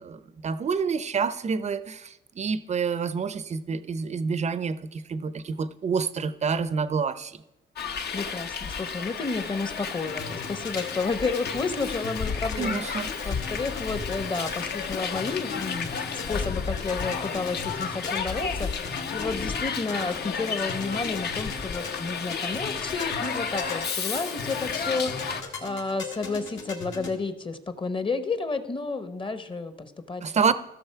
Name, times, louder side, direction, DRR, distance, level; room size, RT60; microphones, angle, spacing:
voice 1, 0.0-7.4 12.6-13.3 30.2-30.5, right 5 dB, 35° right, 15 dB, 0.6 m, -28 dB
Hiss, 7.8-25.4, left 6 dB, 55° left, 0.9 m, -32 dB
voice 2, 8.1-12.8 13.2-30.2, left 4 dB, 25° left, 11 dB, 0.9 m, -31 dB
sound 1, 10.0-27.1, left 4 dB, 70° left, 2.1 m, -39 dB
15.0 x 6.4 x 4.6 m, 0.93 s
cardioid pair, 90°, 20 cm